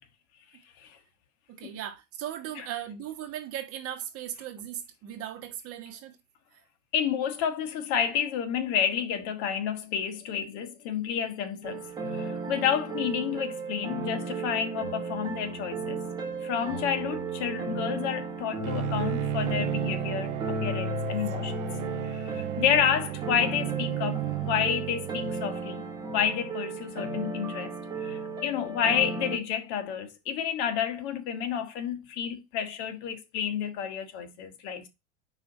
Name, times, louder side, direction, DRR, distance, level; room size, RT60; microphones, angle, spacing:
voice 1, 1.5-6.2 6.5-6.6 16.5-16.8, right 11 dB, 35° right, 1.4 m, -38 dB
voice 2, 6.9-16.0 16.4-21.7 22.1-25.9 26.1-34.9, left 8 dB, 55° left, 1.3 m, -30 dB
sound 1, 11.6-29.4, right 2 dB, 10° right, 1.6 m, -34 dB
Bowed string instrument, 18.6-25.3, right 21 dB, 70° right, 0.5 m, -34 dB
4.9 x 3.8 x 5.4 m
supercardioid pair, 140°, 39 cm